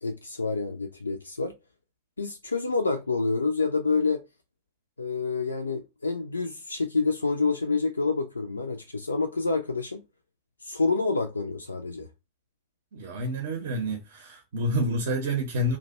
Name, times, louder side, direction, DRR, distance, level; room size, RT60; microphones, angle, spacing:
voice 1, 0.0-1.5 2.2-4.2 5.0-10.0 10.6-12.1, left 4 dB, 80° left, 0.3 m, -28 dB
voice 2, 12.9-15.8, equal, 55° right, 0.5 m, -28 dB
2.5 x 2.1 x 4.0 m
figure-of-eight pair, 90°, 0 cm